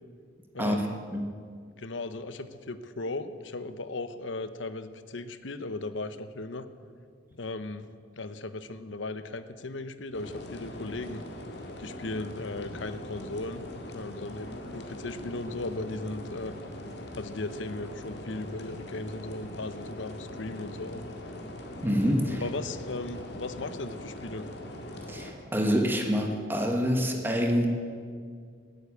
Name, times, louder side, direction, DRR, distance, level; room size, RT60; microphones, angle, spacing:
voice 1, 0.5-1.0 1.8-6.7 7.3-7.9 8.2-11.2 11.8-13.6 13.9-16.5 17.2-21.0 22.4-24.5, left 2 dB, 75° left, 11 dB, 0.9 m, -37 dB
sound 1, 10.1-25.3, left 1 dB, 60° left, 2.0 m, -41 dB
voice 2, 21.8-22.4 25.1-27.7, equal, 10° right, 2 dB, 1.3 m, -26 dB
17.5 x 9.6 x 8.5 m, 2.1 s
head